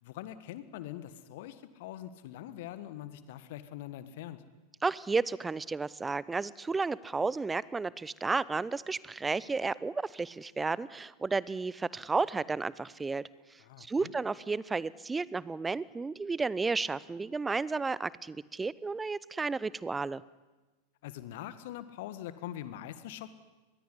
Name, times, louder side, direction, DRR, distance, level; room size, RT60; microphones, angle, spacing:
voice 1, 0.0-4.4 13.6-14.1 21.0-23.3, left 12 dB, 55° left, 13 dB, 1.5 m, -43 dB
voice 2, 4.8-13.3 13.8-20.2, right 4 dB, 15° right, 21 dB, 0.8 m, -32 dB
23.5 x 21.5 x 9.9 m, 1.2 s
figure-of-eight pair, 90°, 0 cm